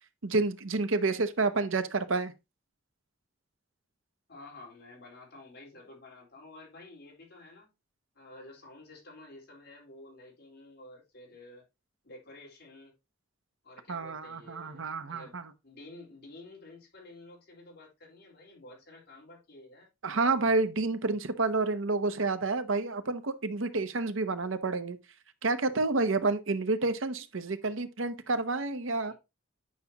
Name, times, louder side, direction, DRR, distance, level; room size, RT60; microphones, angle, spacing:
voice 1, 0.2-2.3 13.9-15.4 20.0-25.0 25.4-29.1, right 3 dB, 90° right, 0.9 m, -29 dB
voice 2, 4.3-7.7 8.1-11.6 12.0-12.9 13.6-19.9 29.1-29.2, left 2 dB, 60° left, 4.2 m, -51 dB
9.3 x 5.9 x 2.9 m
head